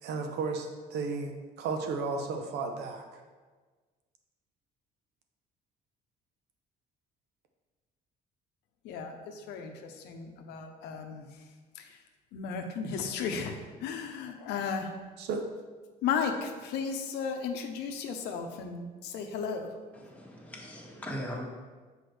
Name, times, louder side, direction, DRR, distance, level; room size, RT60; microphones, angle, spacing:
voice 1, 0.0-3.2 15.2-15.5, right 4 dB, 80° right, 5 dB, 0.7 m, -34 dB
voice 2, 8.8-11.5 11.7-12.0 12.3-14.9 16.0-19.7, left 6 dB, 85° left, 4 dB, 0.7 m, -35 dB
voice 3, 19.9-21.4, equal, 10° left, -2 dB, 1.3 m, -40 dB
6.1 x 4.8 x 3.3 m, 1.4 s
cardioid pair, 110°, 17 cm